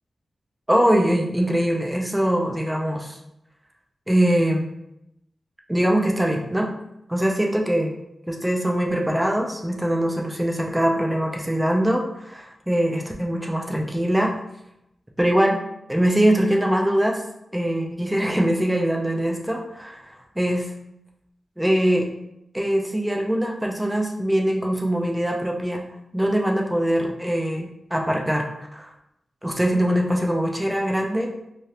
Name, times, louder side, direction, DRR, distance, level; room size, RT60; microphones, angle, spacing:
voice 1, 0.7-3.2 4.1-4.6 5.7-6.7 7.1-7.9 8.3-14.3 15.2-15.6 15.9-17.2 17.5-20.0 20.4-20.6 21.6-22.1 22.5-25.8 26.1-28.9 29.4-31.3, right 1 dB, 10° right, 0 dB, 0.4 m, -22 dB
3.1 x 2.3 x 2.8 m, 0.82 s
wide cardioid pair, 85°, 0 cm